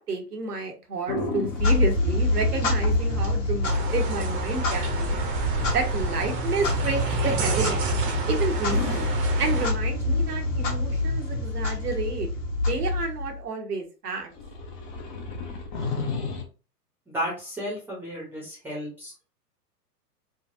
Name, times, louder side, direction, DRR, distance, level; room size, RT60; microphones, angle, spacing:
voice 1, 0.0-5.2 5.7-7.8 8.3-9.1 9.4-12.3 12.7-14.3, right 3 dB, 70° right, 3 dB, 1.1 m, -30 dB
sound 1, 1.1-5.4 8.6-11.0 14.3-16.4, left 3 dB, 30° left, 0.7 m, -35 dB
Clock, 1.4-13.4, left 2 dB, 50° left, 1.4 m, -26 dB
sound 2, 3.6-9.7, right 5 dB, 35° right, 0.8 m, -30 dB
voice 2, 17.1-19.3, equal, 5° right, -5 dB, 0.8 m, -33 dB
3.9 x 2.3 x 2.6 m, 0.34 s
figure-of-eight pair, 105°, 48 cm